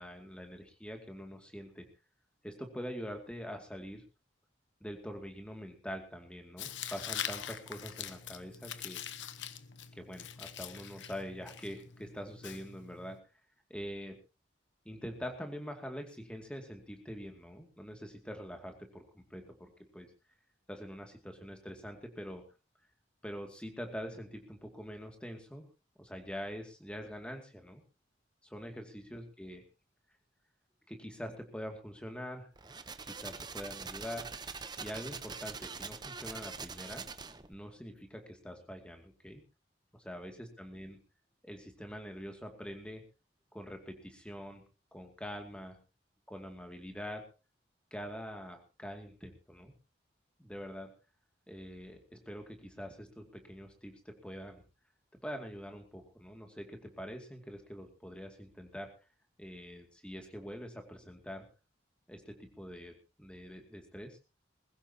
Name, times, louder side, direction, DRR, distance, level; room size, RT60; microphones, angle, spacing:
voice 1, 0.0-1.9 2.4-4.0 4.8-9.0 10.0-13.2 13.7-14.2 14.8-20.1 20.7-22.4 23.2-25.7 26.0-27.8 28.4-29.6 30.9-32.5 33.1-34.3 34.8-37.0 37.5-39.4 40.0-41.0 41.4-43.0 43.5-44.6 44.9-45.8 46.3-47.3 47.9-49.7 50.4-50.9 51.5-54.6 55.2-58.9 59.4-61.4 62.1-64.2, equal, 5° left, 4 dB, 2.4 m, -44 dB
Tearing, 6.6-13.2, left 9 dB, 80° left, 1.1 m, -43 dB
sound 1, 32.6-37.5, right 5 dB, 25° right, 0.9 m, -44 dB
21.0 x 16.0 x 2.9 m, 0.31 s
head